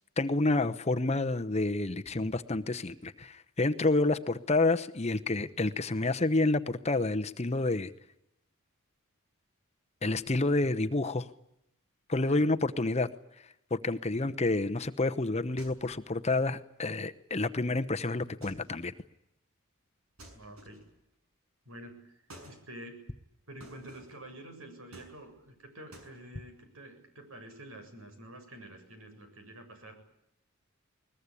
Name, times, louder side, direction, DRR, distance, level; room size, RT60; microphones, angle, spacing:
voice 1, 0.2-7.9 10.0-11.3 12.1-13.1 13.7-18.9, left 2 dB, 30° left, 10 dB, 0.9 m, -29 dB
sound 1, 15.6-16.1 18.4-18.9 20.2-21.0 22.3-22.6 23.6-24.2 24.9-25.5 25.9-26.1, right 1 dB, 85° right, 6.8 m, -52 dB
voice 2, 20.3-20.8 21.7-23.0 23.5-29.9, right 1 dB, 70° right, 6 dB, 7.3 m, -48 dB
21.5 x 20.5 x 9.9 m, 0.82 s
head